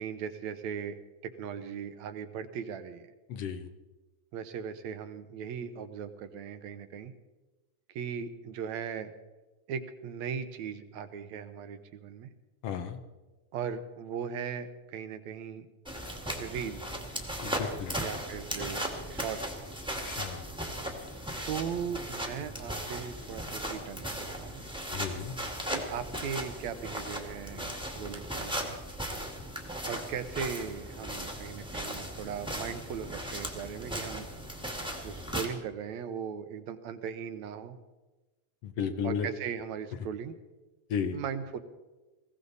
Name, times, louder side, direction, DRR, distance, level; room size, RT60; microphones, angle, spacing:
voice 1, 0.0-3.1 4.3-7.1 7.9-9.1 9.7-12.3 13.5-15.7 16.4-16.8 18.0-19.6 21.5-24.6 25.7-28.7 29.8-34.3 35.0-37.8 39.0-40.4 41.1-41.6, right 7 dB, 75° right, 11 dB, 2.2 m, -38 dB
voice 2, 3.3-3.7 12.6-13.0 17.4-18.2 20.0-20.5 24.9-25.3 38.6-39.3 40.9-41.2, left 7 dB, 65° left, 9 dB, 1.8 m, -34 dB
sound 1, 15.8-35.5, right 1 dB, ahead, 1.3 m, -37 dB
20.5 x 16.5 x 4.0 m, 1.2 s
omnidirectional pair, 3.3 m